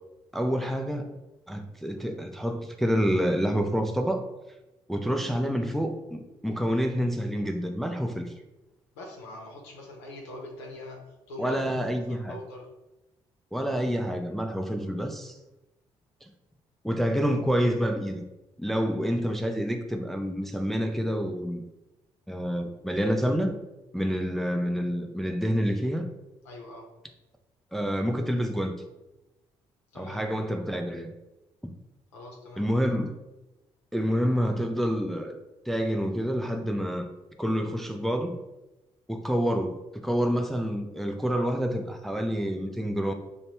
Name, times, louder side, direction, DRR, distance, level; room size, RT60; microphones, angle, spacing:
voice 1, 0.3-1.2 1.5-4.2 4.9-8.3 11.4-12.4 13.5-15.3 16.2-16.3 16.8-18.2 18.6-21.6 22.3-23.6 23.9-26.0 27.7-28.8 29.9-31.1 32.6-33.1 33.9-35.4 35.7-37.1 37.4-38.4 39.1-39.8 40.0-43.1, equal, ahead, 5 dB, 0.3 m, -28 dB
voice 2, 8.9-11.0 11.3-11.7 12.1-12.7 26.4-26.9 29.9-30.2 32.1-32.7, left 2 dB, 90° left, -1 dB, 0.6 m, -42 dB
3.0 x 2.1 x 2.9 m, 0.98 s
hypercardioid pair, 45°, 14 cm